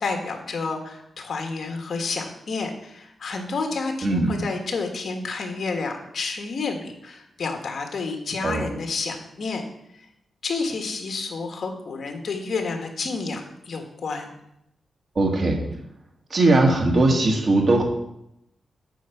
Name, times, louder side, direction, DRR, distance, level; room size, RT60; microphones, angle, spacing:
voice 1, 0.0-9.6 9.9-10.0 10.4-14.3, left 4 dB, 55° left, 4 dB, 1.7 m, -30 dB
voice 2, 4.0-4.4 8.4-8.7 15.2-15.6 16.3-17.8, right 2 dB, 45° right, 2 dB, 1.8 m, -19 dB
9.0 x 4.7 x 7.1 m, 0.80 s
wide cardioid pair, 125°, 0 cm